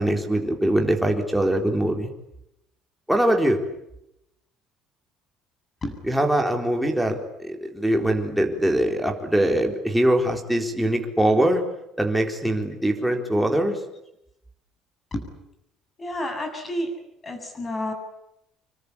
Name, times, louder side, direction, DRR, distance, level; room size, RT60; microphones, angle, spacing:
voice 1, 0.0-2.1 3.1-3.6 6.1-11.6 12.0-13.7, right 1 dB, ahead, 2 dB, 4.0 m, -22 dB
voice 2, 13.0-13.4 15.1-15.3 16.0-16.9 17.2-17.9, left 1 dB, 20° left, 6 dB, 7.7 m, -31 dB
27.0 x 24.0 x 8.7 m, 0.82 s
cardioid pair, 165°, 0 cm